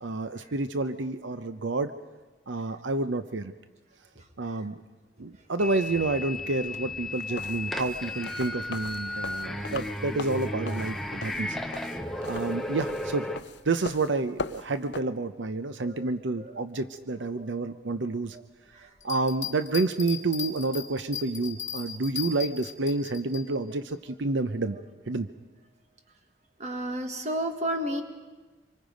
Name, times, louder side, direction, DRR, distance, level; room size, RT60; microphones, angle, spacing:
voice 1, 0.0-1.9 2.5-3.5 4.4-4.8 5.2-11.6 12.3-13.3 13.6-18.4 18.8-24.8 25.1-25.3, right 3 dB, 85° right, 11 dB, 0.7 m, -29 dB
voice 2, 4.1-4.7 5.2-5.5 14.9-15.1 15.8-16.1 16.4-16.6 17.2-17.8 18.3-18.5 18.7-19.0 24.6-24.8 26.6-28.0, right 1 dB, 40° right, 5 dB, 1.7 m, -35 dB
sound 1, 5.6-13.4, left 1 dB, ahead, 0.8 m, -34 dB
sound 2, 7.2-15.0, left 4 dB, 70° left, 0.6 m, -40 dB
sound 3, 19.0-23.4, left 8 dB, 40° left, 2.0 m, -36 dB
26.0 x 24.0 x 5.2 m, 1.2 s
head